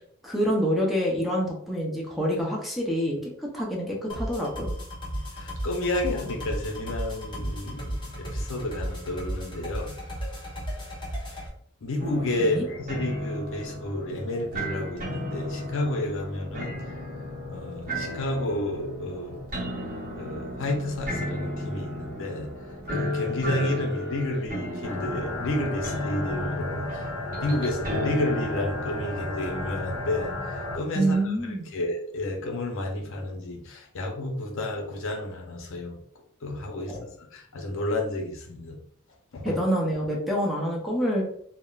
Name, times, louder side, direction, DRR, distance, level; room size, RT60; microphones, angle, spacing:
voice 1, 0.2-4.7 12.4-12.6 31.0-31.7 36.9-37.0 39.4-41.3, equal, ahead, -3 dB, 0.6 m, -27 dB
sound 1, 4.1-11.5, equal, 25° left, 0.9 m, -34 dB
voice 2, 5.1-9.9 11.8-16.7 17.5-19.4 20.2-22.5 22.9-31.2 31.7-36.0 36.4-38.8 39.3-39.6, left 1 dB, 65° left, 1 dB, 0.6 m, -31 dB
sound 2, 12.0-29.5, left 1 dB, 40° right, 0.7 m, -34 dB
sound 3, 24.8-30.8, left 2 dB, 45° left, 1.1 m, -33 dB
3.5 x 2.0 x 2.3 m, 0.63 s
head